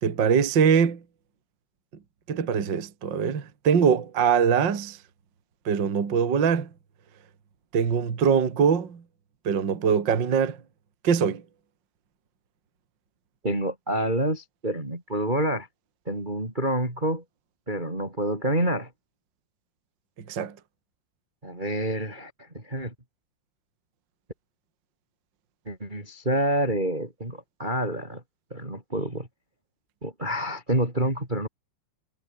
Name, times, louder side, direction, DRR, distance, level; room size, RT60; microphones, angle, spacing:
voice 1, 0.0-1.0 2.3-5.0 5.6-6.7 7.7-9.0 9.4-10.6 11.0-11.4 20.3-20.5, right 7 dB, 35° right, 2.1 m, -22 dB
voice 2, 13.4-15.7 16.1-17.2 17.7-18.9 21.4-22.9 25.7-28.2 28.5-29.3 30.0-31.5, right 1 dB, 10° right, 5.5 m, -28 dB
omnidirectional pair, 5.1 m